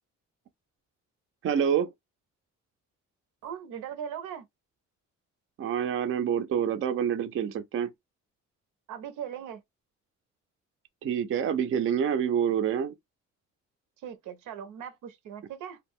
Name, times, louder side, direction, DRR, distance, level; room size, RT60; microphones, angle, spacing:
voice 1, 1.4-1.9 5.6-7.9 11.0-12.9, right 8 dB, 45° right, 0.4 m, -27 dB
voice 2, 3.4-4.4 8.9-9.6 14.0-15.8, right 8 dB, 85° right, 0.6 m, -39 dB
2.2 x 2.0 x 3.5 m
cardioid pair, 90°, 30 cm